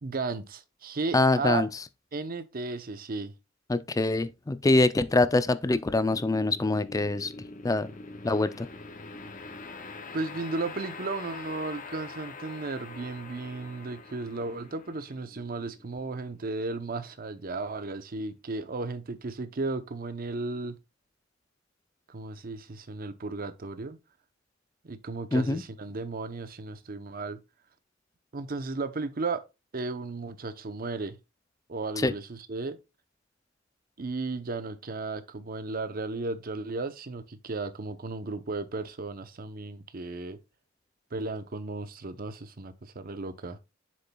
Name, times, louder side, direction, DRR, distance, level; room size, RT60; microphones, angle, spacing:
voice 1, 0.0-1.6 2.1-3.3 10.1-20.8 22.1-24.0 24.8-27.4 28.3-29.4 29.7-31.2 31.7-32.8 34.0-40.4 41.1-43.6, right 3 dB, 50° right, 0.7 m, -34 dB
voice 2, 1.1-1.7 3.7-7.3 7.6-7.9 8.2-8.7 25.3-25.6 32.0-32.1, left 2 dB, 15° left, 0.4 m, -24 dB
sound 1, 5.8-17.0, left 3 dB, 45° left, 0.7 m, -44 dB
7.6 x 6.9 x 2.3 m
head